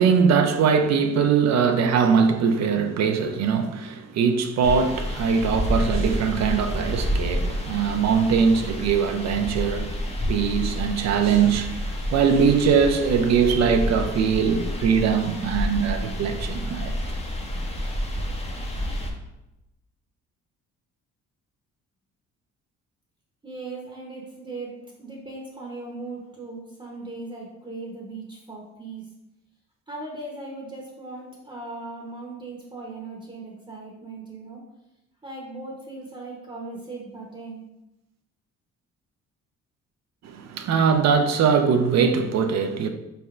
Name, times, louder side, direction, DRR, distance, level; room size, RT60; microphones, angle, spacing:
voice 1, 0.0-10.0 10.3-16.9 40.2-42.9, right 6 dB, 60° right, 0.5 m, -21 dB
sound 1, 4.6-19.1, equal, 20° left, 0.6 m, -29 dB
voice 2, 23.4-29.1 29.9-34.6 35.2-37.6, right 3 dB, 15° right, 0.8 m, -38 dB
4.1 x 3.3 x 2.4 m
cardioid pair, 90°, 30 cm